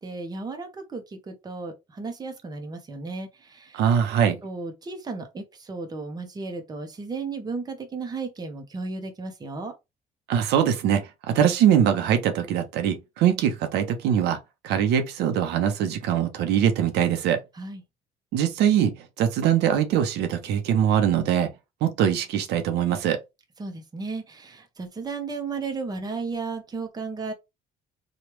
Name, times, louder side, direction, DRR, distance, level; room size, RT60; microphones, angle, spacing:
voice 1, 0.0-3.8 4.4-9.7 17.5-17.8 23.6-27.3, right 4 dB, 25° right, 0.8 m, -34 dB
voice 2, 3.7-4.4 10.3-14.4 14.6-17.4 18.3-21.5 21.8-23.2, right 9 dB, 80° right, 0.8 m, -22 dB
3.1 x 2.4 x 3.0 m
cardioid pair, 110°, 17 cm